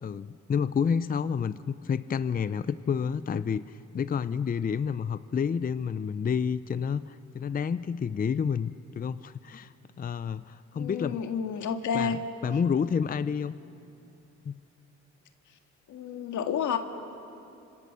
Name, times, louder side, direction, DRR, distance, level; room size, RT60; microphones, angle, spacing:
voice 1, 0.0-11.2 11.9-13.5 14.5-14.6, left 6 dB, 30° left, 14 dB, 0.6 m, -29 dB
voice 2, 10.8-12.2 15.9-16.8, left 7 dB, 75° left, 5 dB, 2.0 m, -30 dB
30.0 x 26.0 x 6.9 m, 2.8 s
cardioid pair, 90°, 30 cm